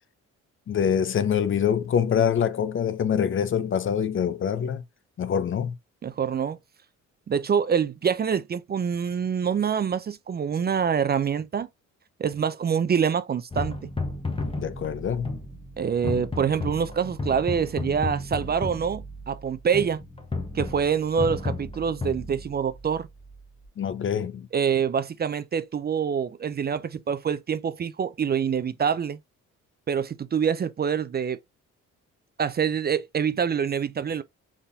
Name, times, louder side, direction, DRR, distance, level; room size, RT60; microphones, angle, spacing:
voice 1, 0.7-4.8 5.2-5.8 14.6-15.4 23.8-24.5, left 8 dB, 40° left, 0.6 m, -25 dB
voice 2, 6.0-6.6 7.3-11.7 12.2-13.9 15.8-20.0 20.5-23.1 24.5-29.2 29.9-31.4 32.4-34.2, right 7 dB, 35° right, 0.5 m, -26 dB
sound 1, 13.5-23.7, left 2 dB, 20° left, 1.1 m, -34 dB
4.3 x 3.6 x 2.7 m
cardioid pair, 90°, 30 cm